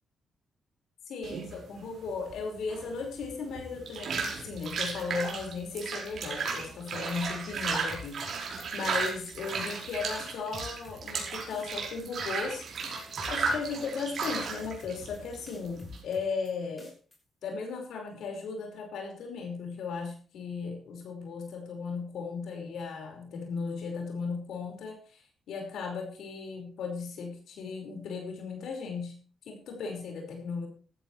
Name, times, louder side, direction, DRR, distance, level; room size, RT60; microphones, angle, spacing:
voice 1, 1.1-12.6 13.3-16.9 17.4-25.2 25.5-29.1 29.5-30.7, left 5 dB, 80° left, 2 dB, 5.2 m, -36 dB
sound 1, 1.2-16.0, right 4 dB, 60° right, 5.2 m, -35 dB
sound 2, 6.9-7.3 7.5-8.6 8.9-9.2 9.5-9.9 10.2-11.2 11.5-11.9 12.2-12.5 12.8-13.9 14.1-14.5 14.8-15.2 15.5-16.5 16.8-17.2, left 2 dB, 20° left, 6.1 m, -48 dB
15.0 x 13.5 x 3.3 m, 0.39 s
cardioid pair, 110°, 0 cm